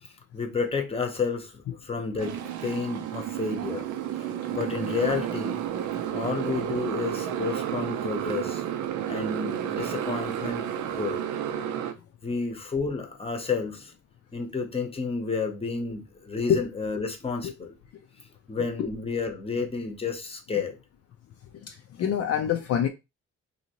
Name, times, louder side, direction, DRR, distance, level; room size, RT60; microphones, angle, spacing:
voice 1, 0.0-3.9 4.2-5.6 6.1-8.6 9.1-11.2 12.2-13.9 14.3-17.7 18.5-20.8, left 4 dB, 20° left, 0.8 m, -31 dB
Motorcycle, 2.2-11.9, right 10 dB, 75° right, 0.5 m, -31 dB
voice 2, 21.6-22.9, left 9 dB, 55° left, 0.4 m, -26 dB
2.8 x 2.7 x 2.9 m
cardioid pair, 90°, 30 cm